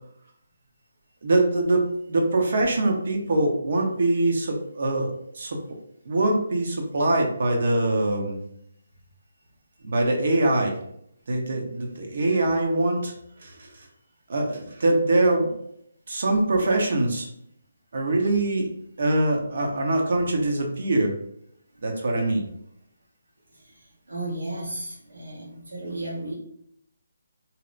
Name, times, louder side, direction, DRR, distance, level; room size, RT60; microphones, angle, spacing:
voice 1, 1.2-5.6 6.1-8.4 9.8-10.8 11.3-13.1 13.4-13.7 14.3-15.5 16.1-17.3 17.9-18.7 19.0-21.1 21.8-22.5, right 2 dB, 60° right, 2 dB, 0.8 m, -23 dB
voice 2, 24.1-26.3, right 2 dB, 80° right, -4 dB, 1.1 m, -34 dB
2.8 x 2.1 x 3.8 m, 0.71 s
hypercardioid pair, 160°, 0 cm